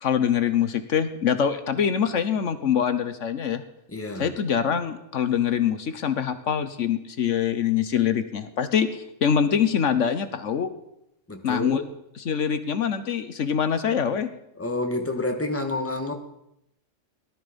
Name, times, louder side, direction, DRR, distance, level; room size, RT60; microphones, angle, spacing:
voice 1, 0.0-3.6 4.2-10.7 11.4-11.8 12.2-14.3, left 8 dB, 75° left, 11 dB, 1.3 m, -24 dB
voice 2, 3.9-4.3 11.3-11.9 14.6-16.1, left 2 dB, 10° left, 4 dB, 1.5 m, -29 dB
18.0 x 12.5 x 5.2 m, 0.81 s
omnidirectional pair, 1.3 m